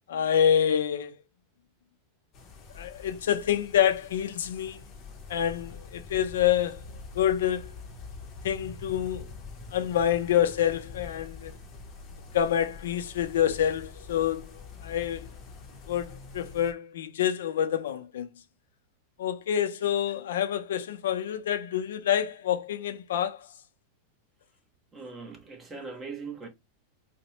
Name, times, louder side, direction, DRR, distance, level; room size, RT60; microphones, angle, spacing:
voice 1, 0.1-1.1 2.8-4.8 5.3-6.8 7.1-7.7 8.4-9.3 9.7-11.6 12.3-15.3 15.9-18.3 19.2-23.5, left 9 dB, 90° left, 0.6 m, -27 dB
sound 1, 2.3-16.7, left 4 dB, 25° left, 0.8 m, -45 dB
voice 2, 24.9-26.5, right 4 dB, 15° right, 0.9 m, -40 dB
4.1 x 2.2 x 2.9 m
supercardioid pair, 155°, 0 cm